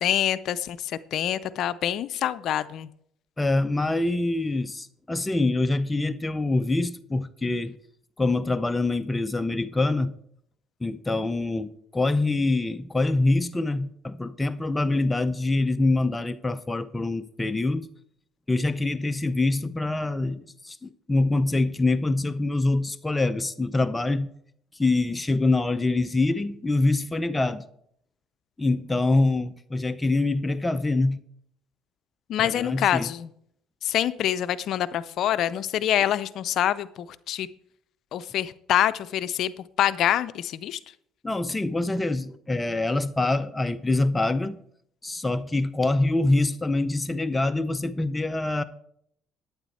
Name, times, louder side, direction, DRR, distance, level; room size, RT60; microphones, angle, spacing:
voice 1, 0.0-2.9 32.3-33.3 33.8-37.5 38.1-40.8, left 11 dB, 65° left, 0.5 m, -26 dB
voice 2, 3.4-7.8 8.2-10.1 10.8-17.9 18.5-24.3 24.8-27.6 28.6-31.2 32.4-33.1 41.2-44.6 45.0-48.6, left 2 dB, 15° left, 0.6 m, -25 dB
11.5 x 9.5 x 4.3 m
supercardioid pair, 90°, 0 cm